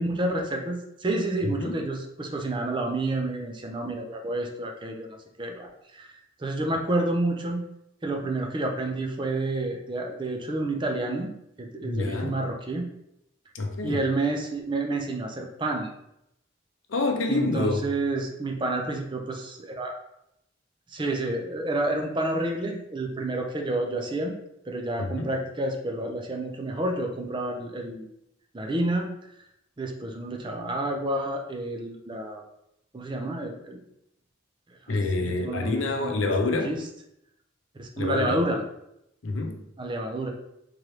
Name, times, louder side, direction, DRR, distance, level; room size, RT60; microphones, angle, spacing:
voice 1, 0.0-6.1 6.4-7.6 8.0-11.3 11.6-12.9 13.8-15.9 17.3-20.0 20.9-24.3 24.7-28.1 28.5-29.1 29.8-32.4 32.9-33.8 34.9-36.3 36.6-36.8 37.8-38.6 39.8-40.3, right 2 dB, 25° right, 2 dB, 0.5 m, -29 dB
voice 2, 11.8-12.4 13.5-14.0 16.9-17.9 25.0-25.3 34.9-36.7 38.0-38.4 39.2-39.6, left 3 dB, 85° left, 3 dB, 0.6 m, -27 dB
3.7 x 3.1 x 3.1 m, 0.80 s
head